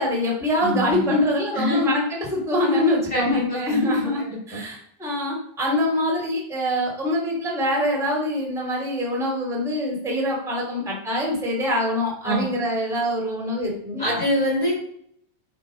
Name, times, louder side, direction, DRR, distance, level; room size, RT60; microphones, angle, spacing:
voice 1, 0.0-4.2 4.5-14.2, left 1 dB, ahead, -4 dB, 1.4 m, -24 dB
voice 2, 0.6-1.0 1.5-1.9 3.1-3.8 4.5-4.6 12.2-12.5 14.0-14.7, equal, 25° left, -3 dB, 2.3 m, -24 dB
10.0 x 5.3 x 5.1 m, 0.67 s
omnidirectional pair, 5.4 m